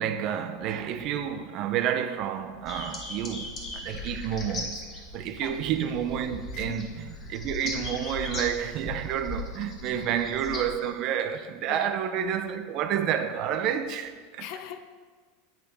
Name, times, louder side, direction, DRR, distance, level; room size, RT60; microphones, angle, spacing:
voice 1, 0.0-4.8 5.1-6.9 7.3-14.4, right 9 dB, 45° right, 0.4 m, -29 dB
sound 1, 2.7-10.9, left 2 dB, 30° left, 1.0 m, -38 dB
voice 2, 6.5-6.9 9.9-10.1 11.7-12.0 14.4-14.8, left 9 dB, 50° left, 0.4 m, -41 dB
8.1 x 2.8 x 5.3 m
figure-of-eight pair, 80°, 0 cm